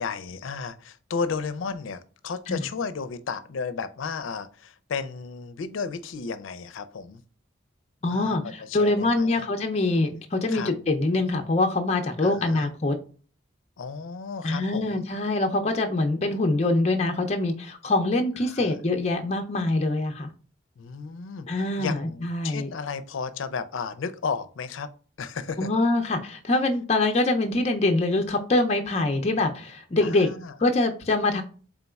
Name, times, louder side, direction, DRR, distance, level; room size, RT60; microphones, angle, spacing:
voice 1, 0.0-7.2 8.1-9.5 10.5-10.7 12.2-12.7 13.8-15.1 18.5-18.8 20.8-24.9 25.2-25.7 30.0-30.5, left 5 dB, 90° left, 13 dB, 0.5 m, -33 dB
voice 2, 8.0-13.0 14.4-20.3 21.5-22.7 25.6-30.3 30.6-31.4, left 2 dB, 35° left, 4 dB, 0.5 m, -24 dB
4.0 x 3.6 x 2.3 m, 0.39 s
head